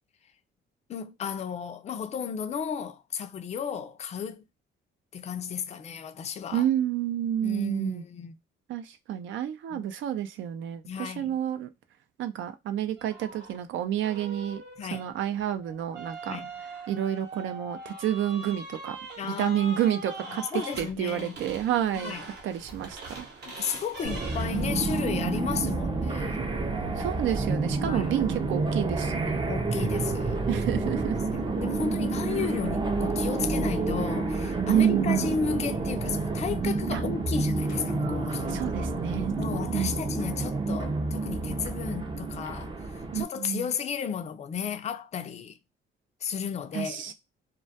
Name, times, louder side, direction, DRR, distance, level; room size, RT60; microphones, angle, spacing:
voice 1, 0.9-4.4 5.1-6.7 7.4-8.4 9.7-9.9 10.9-11.4 14.8-15.1 16.3-16.5 19.2-19.6 20.3-21.4 21.9-22.2 23.5-26.5 27.8-28.2 29.5-30.4 30.7-38.6 39.4-45.6 46.2-47.1, left 7 dB, 35° left, 0.4 m, -34 dB
voice 2, 6.5-8.0 8.7-11.7 12.2-14.6 14.9-16.4 16.9-19.0 19.2-22.1 22.4-23.3 27.0-29.5 30.5-31.2 34.7-35.3 36.9-37.0 38.5-39.3 39.7-40.0 43.1-43.7 46.7-47.1, right 10 dB, 75° right, 0.4 m, -29 dB
sound 1, 13.0-13.6 14.0-24.9, right 2 dB, 60° right, 0.8 m, -42 dB
sound 2, 24.0-43.2, right 3 dB, 25° right, 0.5 m, -29 dB
sound 3, 37.7-41.9, left 4 dB, 70° left, 0.8 m, -43 dB
2.2 x 2.1 x 2.6 m
cardioid pair, 90°, 20 cm